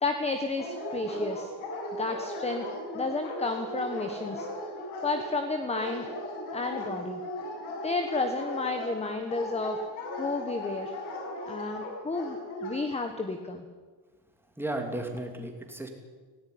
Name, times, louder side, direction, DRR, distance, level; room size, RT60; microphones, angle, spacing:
voice 1, 0.0-1.5 2.0-2.7 2.9-4.5 5.0-6.1 6.5-7.2 7.8-9.8 10.2-10.9 11.5-13.6, left 3 dB, 15° left, 7 dB, 1.3 m, -31 dB
Dog, 0.6-12.8, left 1 dB, 80° left, 6.8 m, -37 dB
voice 2, 14.6-15.9, right 1 dB, 5° right, 3 dB, 2.9 m, -34 dB
18.0 x 17.0 x 9.5 m, 1.4 s
cardioid pair, 150°, 48 cm